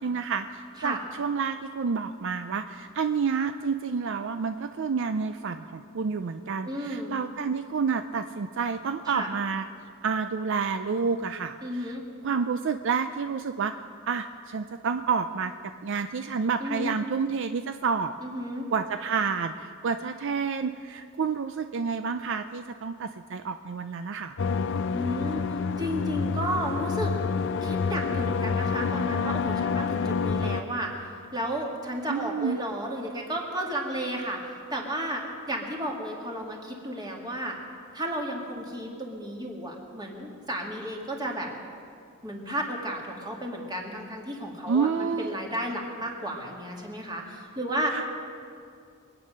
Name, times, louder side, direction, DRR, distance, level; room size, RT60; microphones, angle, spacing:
voice 1, 0.0-9.7 10.0-11.9 12.2-13.7 14.1-15.5 15.8-18.1 18.7-24.3 32.1-32.6 44.7-45.3 47.9-48.0, right 5 dB, 60° right, 9 dB, 0.5 m, -29 dB
voice 2, 6.6-7.1 9.1-9.3 11.6-12.1 16.6-17.0 18.2-18.7 24.9-25.5 25.8-27.1 27.6-30.9 31.3-35.2 35.5-37.6 37.9-41.5 42.2-47.9, right 1 dB, 20° right, -1 dB, 2.3 m, -33 dB
sound 1, 24.4-30.6, left 5 dB, 60° left, 0.5 m, -28 dB
23.5 x 9.3 x 6.6 m, 2.3 s
head